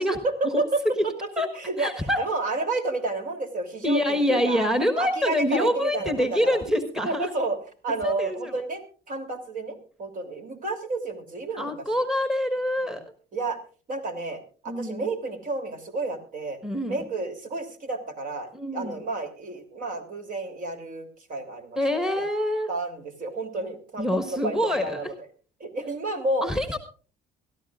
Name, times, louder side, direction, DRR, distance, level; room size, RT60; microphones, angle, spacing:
voice 1, 0.0-4.6 5.0-6.6 7.0-7.6 7.8-12.0 12.8-13.0 13.3-13.6 13.9-16.6 16.9-22.3 22.7-25.1 25.6-26.4, right 2 dB, 55° right, 6 dB, 3.1 m, -31 dB
voice 2, 1.8-2.2 3.8-7.3 8.0-8.6 11.6-13.0 14.7-15.1 16.6-17.0 18.5-19.0 21.8-22.7 24.0-25.0 26.4-26.8, left 1 dB, 5° right, 8 dB, 1.4 m, -25 dB
22.5 x 13.5 x 2.5 m, 0.37 s
cardioid pair, 110°, 17 cm